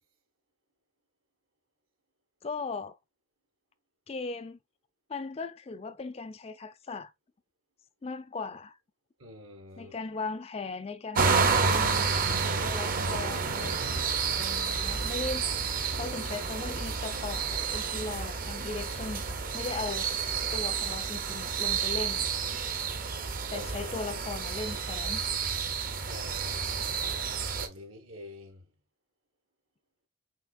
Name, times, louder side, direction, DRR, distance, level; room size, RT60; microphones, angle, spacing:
voice 1, 2.4-2.9 4.1-4.6 5.1-7.1 8.0-8.8 9.8-12.1 12.6-13.8 14.4-15.4 15.9-20.1 20.5-22.3 23.5-25.3, left 3 dB, 30° left, 0.3 m, -38 dB
voice 2, 9.2-9.9 23.5-23.7 26.1-28.7, left 1 dB, 80° right, 1.3 m, -46 dB
sound 1, 11.1-27.7, right 5 dB, 40° right, 0.6 m, -30 dB
5.7 x 3.2 x 2.3 m
head